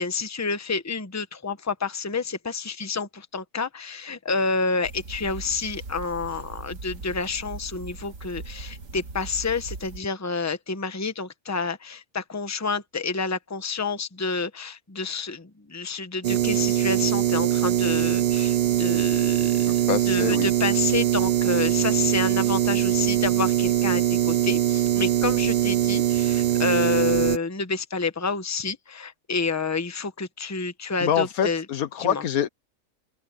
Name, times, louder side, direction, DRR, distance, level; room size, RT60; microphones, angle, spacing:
voice 1, 0.0-31.7 32.0-32.2, left 4 dB, 15° left, 1.0 m, -29 dB
sound 1, 4.8-10.0, right 3 dB, 60° right, 1.9 m, -39 dB
sound 2, 16.2-27.4, right 12 dB, 80° right, 0.4 m, -22 dB
voice 2, 19.6-20.5 31.0-32.5, left 9 dB, 75° left, 1.3 m, -26 dB
open air
omnidirectional pair, 1.5 m